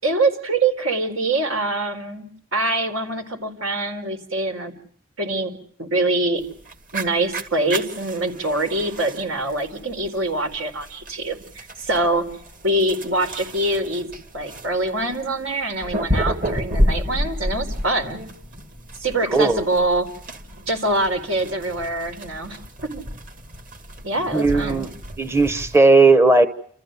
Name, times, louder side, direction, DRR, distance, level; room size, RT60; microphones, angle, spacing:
voice 1, 0.0-2.3 2.5-4.7 5.2-5.5 5.8-6.4 6.9-12.3 12.6-18.2 19.0-20.1 20.7-23.0 24.0-24.9, right 2 dB, 80° right, 6 dB, 4.4 m, -24 dB
sound 1, 6.4-25.8, equal, 40° right, 2.1 m, -30 dB
voice 2, 19.3-19.6 24.3-24.9 25.2-26.5, right 3 dB, 15° right, 9 dB, 0.9 m, -16 dB
29.0 x 15.0 x 8.1 m, 0.64 s
head